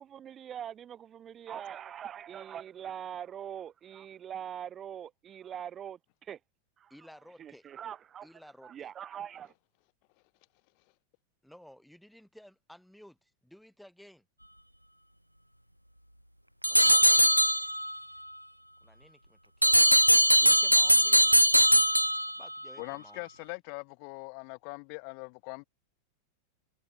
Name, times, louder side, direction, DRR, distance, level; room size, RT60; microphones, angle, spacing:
voice 1, 0.1-6.4 6.8-6.9 7.4-8.3 8.6-9.5, right 9 dB, 25° right, 0.5 m, -42 dB
voice 2, 6.9-7.7 8.2-8.9 11.4-14.3 16.7-17.5 18.8-19.8 20.4-21.4 22.4-23.3, equal, ahead, 4.7 m, -55 dB
sound 1, 16.6-18.0 19.6-22.6, equal, 90° right, 0.4 m, -21 dB
voice 3, 22.8-25.6, left 40 dB or more, 45° left, 4.0 m, -41 dB
figure-of-eight pair, 90°, 0 cm